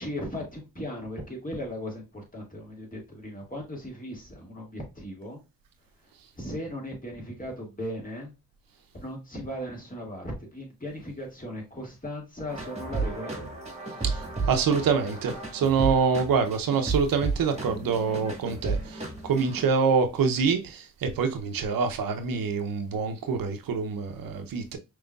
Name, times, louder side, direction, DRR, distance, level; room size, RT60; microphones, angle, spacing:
voice 1, 0.0-5.4 6.0-8.3 8.9-13.6, equal, 25° left, 2.1 m, -37 dB
sound 1, 12.5-19.6, right 3 dB, 20° right, 1.7 m, -33 dB
voice 2, 14.0-24.8, right 5 dB, 85° right, 0.7 m, -26 dB
5.2 x 3.1 x 2.3 m
cardioid pair, 80°, 33 cm